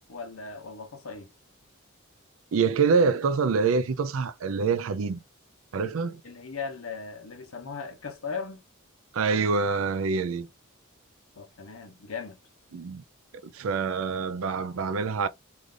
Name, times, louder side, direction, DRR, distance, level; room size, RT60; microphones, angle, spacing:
voice 1, 0.1-1.3 6.2-8.6 11.3-12.4, left 5 dB, 80° left, 0.9 m, -38 dB
voice 2, 2.5-5.2 5.7-6.2 9.1-10.5 12.7-13.0 13.4-15.3, right 5 dB, 75° right, 0.5 m, -26 dB
3.2 x 2.5 x 3.7 m
head